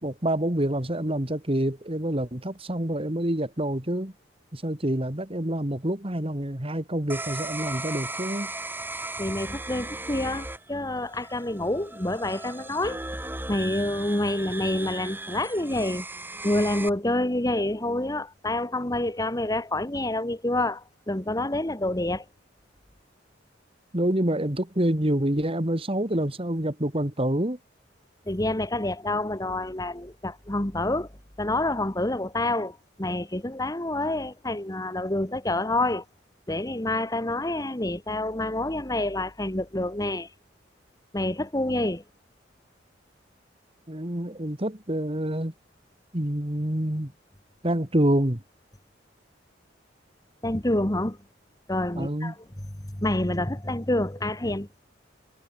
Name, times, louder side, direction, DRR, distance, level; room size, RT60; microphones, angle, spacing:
voice 1, 0.0-4.1 4.5-8.5 23.9-27.6 43.9-45.5 46.1-47.1 47.6-48.4 52.0-52.3, right 1 dB, 30° right, 2.4 m, -27 dB
sound 1, 7.1-16.9, right 2 dB, 10° right, 3.5 m, -37 dB
voice 2, 9.2-13.0 13.5-16.0 16.4-22.2 28.3-31.1 31.4-36.0 36.5-40.3 41.1-42.0 50.4-51.2 51.7-52.4 52.9-54.7, left 1 dB, 20° left, 1.8 m, -27 dB
head